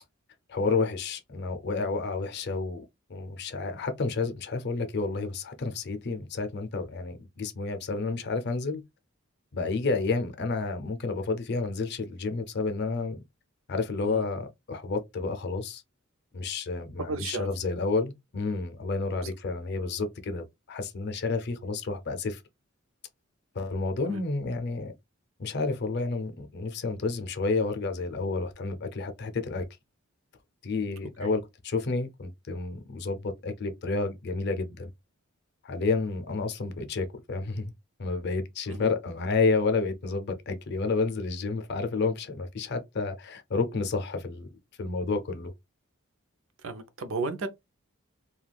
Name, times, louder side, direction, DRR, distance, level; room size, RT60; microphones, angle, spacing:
voice 1, 0.5-2.8 3.1-8.8 9.5-13.2 13.7-15.8 16.3-22.4 23.5-24.9 25.4-29.7 30.6-34.9 35.6-37.7 38.0-44.5 44.8-45.5, left 3 dB, 50° left, 0.5 m, -30 dB
voice 2, 17.0-17.5 24.1-24.2 31.2-31.3 38.7-38.9 46.6-47.5, right 3 dB, 70° right, 0.6 m, -34 dB
2.3 x 2.3 x 3.3 m
head